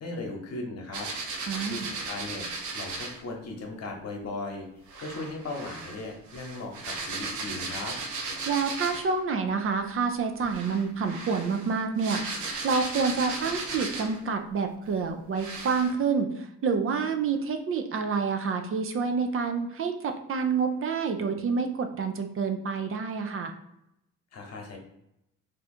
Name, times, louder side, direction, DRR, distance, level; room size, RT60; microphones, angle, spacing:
voice 1, 0.0-1.1 1.7-2.5 2.7-4.7 5.0-7.9 24.3-24.8, left 2 dB, 55° left, 1 dB, 1.0 m, -37 dB
sound 1, 0.9-3.2 4.9-9.2 10.4-14.3 14.8-14.9 15.4-15.9, right 3 dB, 75° right, 0.8 m, -36 dB
voice 2, 1.5-1.9 8.5-23.5, right 5 dB, 45° right, 5 dB, 0.5 m, -28 dB
2.7 x 2.4 x 4.2 m, 0.81 s
cardioid pair, 90°, 30 cm